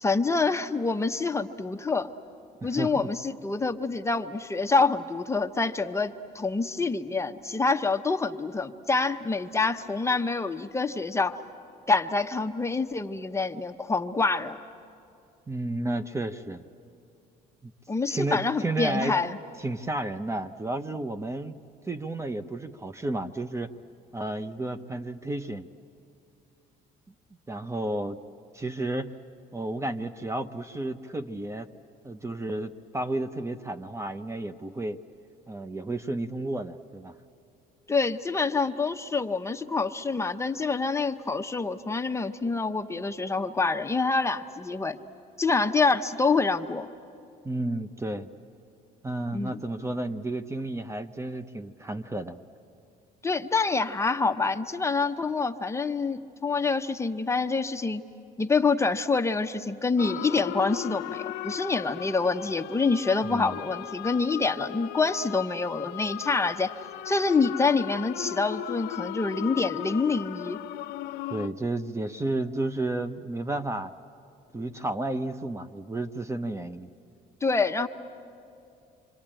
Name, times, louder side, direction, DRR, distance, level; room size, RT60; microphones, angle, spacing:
voice 1, 0.0-2.1 2.6-11.4 11.9-14.6 17.9-19.4 37.9-45.0 45.4-46.9 49.3-49.6 53.2-58.0 58.4-66.7 67.1-70.6 77.4-77.9, left 4 dB, 15° left, 7 dB, 0.8 m, -26 dB
voice 2, 2.6-3.1 15.5-16.6 17.6-17.7 18.1-19.2 19.6-21.6 21.9-23.7 24.1-25.7 27.5-28.2 28.5-29.1 29.5-31.7 32.0-35.0 35.5-37.1 47.4-48.3 49.0-52.4 63.3-63.6 71.3-73.9 74.5-76.9, right 2 dB, 15° right, 10 dB, 0.7 m, -32 dB
sound 1, 60.0-71.5, left 15 dB, 80° left, 0.6 m, -37 dB
27.0 x 25.0 x 8.9 m, 2.5 s
cardioid pair, 110°, 17 cm